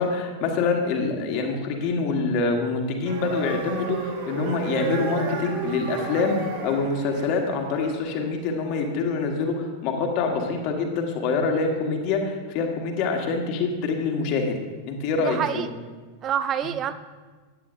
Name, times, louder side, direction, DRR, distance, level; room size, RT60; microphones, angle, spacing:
voice 1, 0.0-14.6 14.9-15.7, left 4 dB, 45° left, 3 dB, 1.5 m, -25 dB
sound 1, 3.0-8.2, right 5 dB, 55° right, 2.2 m, -33 dB
voice 2, 15.2-15.7 16.2-16.9, right 9 dB, 30° right, 12 dB, 0.4 m, -27 dB
14.0 x 9.6 x 2.6 m, 1.4 s
figure-of-eight pair, 90°, 0 cm